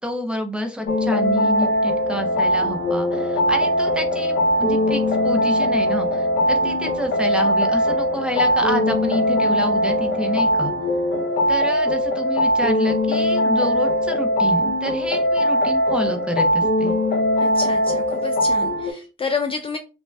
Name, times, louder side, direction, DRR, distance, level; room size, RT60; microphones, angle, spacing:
voice 1, 0.0-10.7 11.5-17.0, equal, 5° right, 5 dB, 0.7 m, -28 dB
sound 1, 0.9-18.9, left 1 dB, 60° left, 0.7 m, -20 dB
Wind instrument woodwind instrument, 2.0-11.4, equal, 35° right, 1.2 m, -36 dB
voice 2, 17.4-19.8, left 4 dB, 30° left, 5 dB, 0.4 m, -29 dB
2.6 x 2.2 x 3.2 m, 0.31 s
cardioid pair, 90°, 20 cm